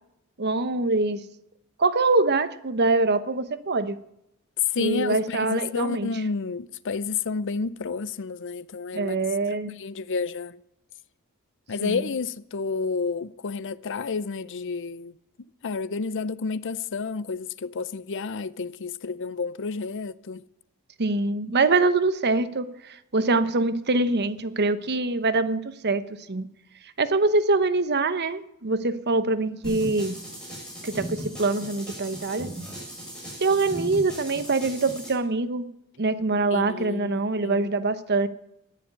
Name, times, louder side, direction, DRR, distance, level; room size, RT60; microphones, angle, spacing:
voice 1, 0.4-1.2 1.8-4.0 4.8-6.1 8.9-9.8 11.8-12.1 21.0-26.0 26.3-26.5 27.0-30.2 30.8-32.5 33.4-35.7 36.0-38.3, right 3 dB, 50° right, 1.0 m, -24 dB
voice 2, 4.7-9.2 9.8-10.6 11.7-15.1 15.6-20.4 36.5-37.7, left 4 dB, 55° left, 0.6 m, -30 dB
sound 1, 29.6-35.1, right 1 dB, 5° left, 7.3 m, -37 dB
13.5 x 10.5 x 9.5 m
head